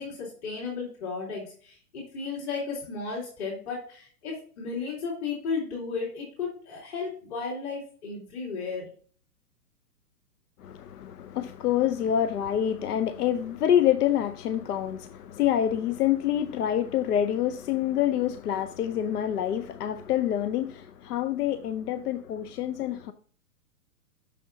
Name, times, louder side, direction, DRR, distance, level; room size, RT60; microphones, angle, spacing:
voice 1, 0.0-8.9, left 4 dB, 45° left, 3.4 m, -34 dB
voice 2, 10.6-23.1, left 10 dB, 75° left, 0.7 m, -27 dB
6.7 x 6.4 x 2.7 m
hypercardioid pair, 140°, 47 cm